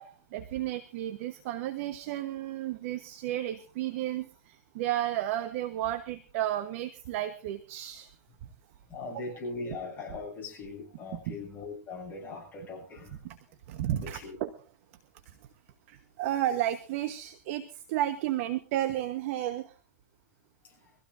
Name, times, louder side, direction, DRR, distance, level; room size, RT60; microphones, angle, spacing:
voice 1, 0.0-8.1 8.4-8.5 9.1-9.3 11.1-11.4 13.2-13.4 13.7-14.5 15.9-19.7, right 13 dB, 45° right, 9 dB, 1.2 m, -33 dB
voice 2, 8.9-13.1 13.9-14.4 20.6-20.7, left 3 dB, 20° left, -2 dB, 7.3 m, -40 dB
24.0 x 15.5 x 2.7 m, 0.34 s
hypercardioid pair, 150°, 10 cm